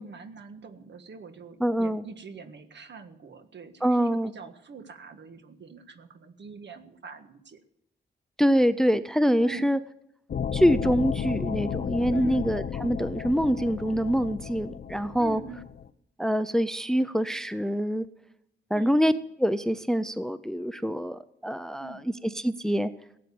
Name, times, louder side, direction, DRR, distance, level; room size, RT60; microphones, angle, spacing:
voice 1, 0.0-7.6 9.4-9.7 12.1-12.5 15.2-15.6 18.7-18.9 21.8-22.1, right 5 dB, 65° right, 8 dB, 1.6 m, -44 dB
voice 2, 1.6-2.0 3.8-4.3 8.4-9.8 10.5-15.4 16.2-18.1 18.7-19.1 19.4-22.0 22.3-22.9, equal, 5° left, 13 dB, 0.5 m, -25 dB
sound 1, 10.3-15.9, left 7 dB, 55° left, 0.7 m, -33 dB
17.0 x 9.2 x 8.5 m, 0.77 s
wide cardioid pair, 150°, 20 cm